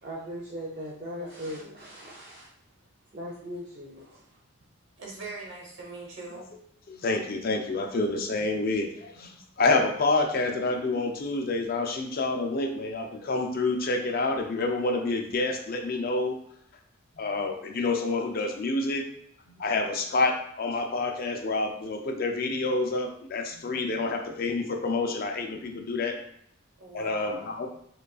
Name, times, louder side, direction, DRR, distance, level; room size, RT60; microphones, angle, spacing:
voice 1, 0.0-2.5 3.1-4.2, equal, 40° right, -5 dB, 0.5 m, -39 dB
voice 2, 5.0-6.5 26.8-27.7, right 2 dB, 60° right, -1 dB, 1.0 m, -41 dB
voice 3, 6.9-16.4 17.2-19.1 19.5-26.2 26.9-27.7, left 3 dB, 45° left, 3 dB, 0.4 m, -28 dB
5.0 x 2.3 x 2.3 m, 0.69 s
head